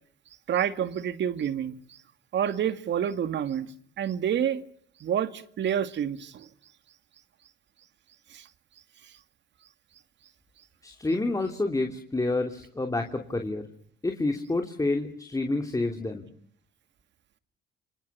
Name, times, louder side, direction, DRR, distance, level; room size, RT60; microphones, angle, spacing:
voice 1, 0.5-2.0 2.3-3.7 4.0-4.6 5.0-6.5 8.3-8.5, right 9 dB, 65° right, 2.2 m, -28 dB
voice 2, 10.8-13.6 14.0-16.3, left 2 dB, 15° left, 3.1 m, -28 dB
29.0 x 26.5 x 7.0 m
cardioid pair, 90°, 20 cm